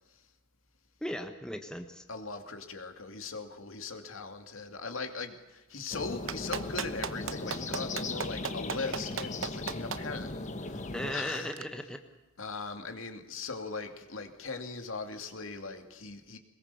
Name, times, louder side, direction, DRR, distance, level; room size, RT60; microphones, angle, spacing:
voice 1, 1.0-2.0 10.9-12.0, left 1 dB, 5° left, 5 dB, 1.3 m, -37 dB
voice 2, 2.1-11.5 12.4-16.4, left 4 dB, 75° left, 6 dB, 2.5 m, -40 dB
sound 1, 5.9-11.2, left 2 dB, 35° left, 1.5 m, -38 dB
Clapping, 6.3-10.0 11.5-11.6, right 6 dB, 75° right, 1.0 m, -35 dB
22.0 x 21.0 x 7.0 m, 1.1 s
head